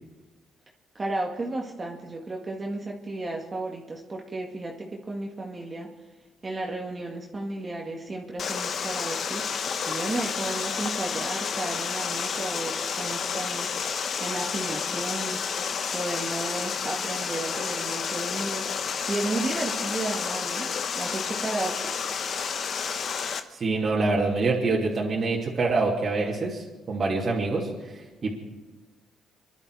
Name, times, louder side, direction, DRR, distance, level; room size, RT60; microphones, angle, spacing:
voice 1, 1.0-5.9 6.4-9.5 9.9-13.7 14.2-15.4 15.9-22.0, right 2 dB, 30° right, 0 dB, 2.0 m, -33 dB
Water, 8.4-23.4, left 6 dB, 55° left, 1.1 m, -30 dB
voice 2, 23.5-28.4, right 3 dB, 45° right, -4 dB, 2.7 m, -26 dB
25.5 x 11.5 x 4.9 m, 1.2 s
cardioid pair, 90°, 0 cm